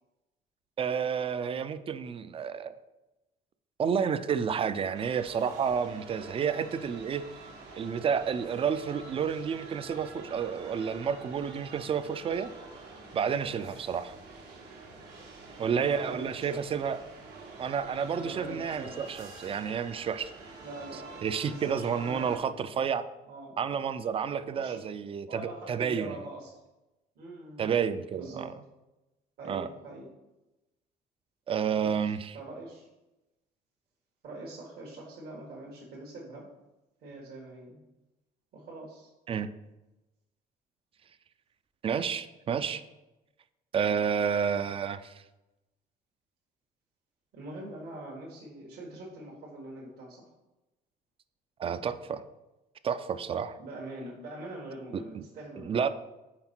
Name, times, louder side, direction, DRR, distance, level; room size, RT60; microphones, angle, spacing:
voice 1, 0.8-2.7 3.8-7.2 7.7-12.5 13.1-14.1 15.6-17.0 17.6-20.3 21.2-23.0 23.6-26.2 27.6-28.5 29.5-29.7 31.5-32.4 39.3-39.5 41.8-42.8 43.7-45.2 51.6-52.2 52.8-53.6 54.9-55.2 55.6-55.9, right 7 dB, 35° right, 13 dB, 0.4 m, -30 dB
sound 1, 4.9-22.4, right 3 dB, 85° right, 1.5 m, -47 dB
voice 2, 15.8-16.6 18.1-19.1 20.6-22.8 23.3-23.6 24.5-24.8 25.3-26.5 27.1-28.5 29.4-30.1 31.7-32.9 34.2-36.5 37.0-37.8 38.5-39.1 47.3-50.3 53.6-55.8, right 2 dB, 70° right, -3 dB, 1.4 m, -43 dB
5.8 x 4.3 x 4.4 m, 1.0 s
cardioid pair, 110°, 17 cm